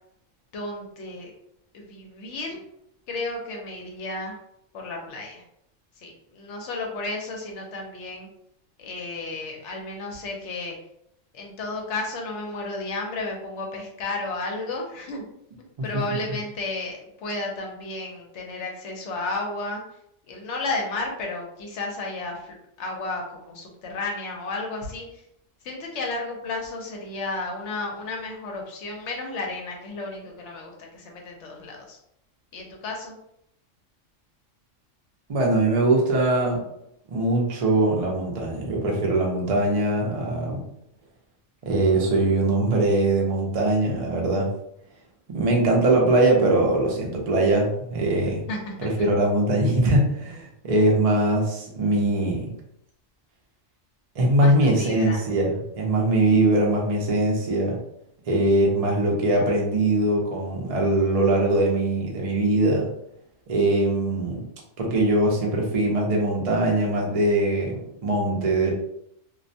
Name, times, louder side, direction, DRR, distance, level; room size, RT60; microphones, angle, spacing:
voice 1, 0.5-1.3 1.7-2.6 3.1-4.4 4.7-5.4 6.0-8.3 8.8-10.8 11.3-15.2 15.8-19.8 20.3-25.0 25.6-32.0 32.5-33.2 48.5-48.7 54.4-55.2, left 2 dB, 70° left, 0 dB, 0.9 m, -33 dB
voice 2, 35.3-36.6 37.1-40.6 41.6-44.5 45.3-48.4 48.8-52.5 54.2-57.8 58.3-62.9 63.5-64.4 64.8-68.7, right 2 dB, 50° right, -1 dB, 0.4 m, -22 dB
2.4 x 2.1 x 2.6 m, 0.76 s
omnidirectional pair, 1.3 m